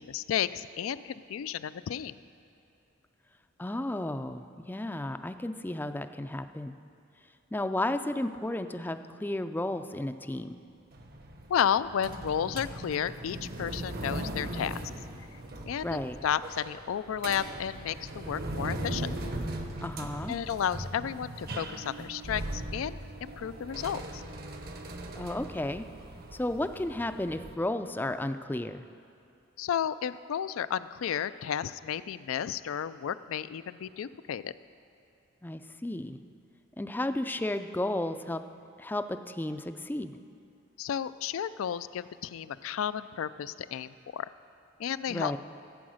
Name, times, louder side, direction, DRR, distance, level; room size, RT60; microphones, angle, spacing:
voice 1, 0.0-2.1 11.5-14.9 15.7-19.1 20.3-24.2 29.6-34.5 40.8-44.3 44.8-45.4, left 8 dB, 80° left, 15 dB, 0.4 m, -32 dB
voice 2, 3.6-6.7 7.5-10.5 15.8-16.2 19.8-20.4 25.1-25.9 26.3-28.9 35.4-36.2 36.8-38.4 38.8-40.2 45.1-45.4, left 1 dB, 10° left, 9 dB, 0.4 m, -33 dB
sound 1, 10.9-27.6, right 1 dB, 50° right, 1.0 m, -39 dB
15.0 x 8.7 x 6.3 m, 2.6 s
head